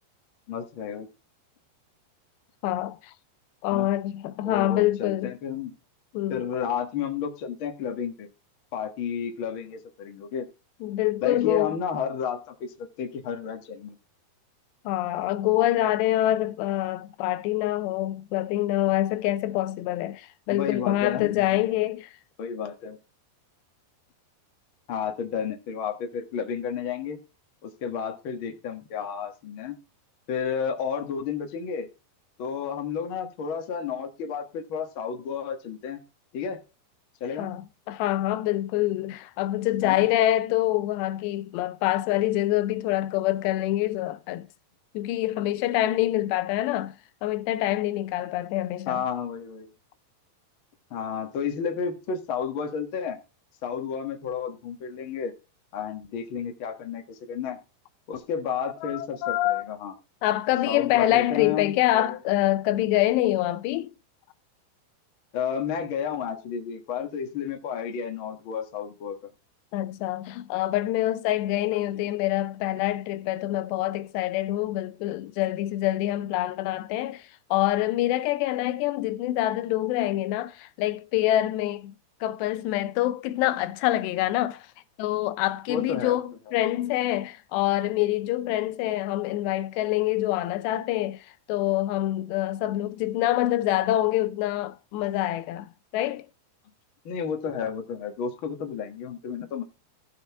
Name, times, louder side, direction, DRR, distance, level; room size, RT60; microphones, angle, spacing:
voice 1, 0.5-1.1 3.7-3.9 4.4-5.7 6.3-8.3 8.7-10.5 11.2-14.0 20.5-21.4 22.4-23.0 24.9-27.2 27.6-29.7 30.3-31.9 32.4-36.0 36.3-36.6 37.2-37.6 39.8-40.0 48.9-49.7 50.9-53.2 53.6-55.3 55.7-57.6 58.1-59.9 60.7-62.2 65.3-69.2 85.7-86.2 97.0-99.6, left 7 dB, 65° left, 1.2 m, -31 dB
voice 2, 2.6-3.1 3.6-5.3 6.1-6.4 10.8-11.8 14.9-22.1 37.4-37.6 37.9-44.5 44.9-47.0 47.2-49.0 58.8-59.7 60.2-63.9 69.7-81.9 82.2-84.7 85.0-96.3, left 14 dB, 85° left, 2.8 m, -26 dB
15.0 x 6.6 x 3.5 m
omnidirectional pair, 4.9 m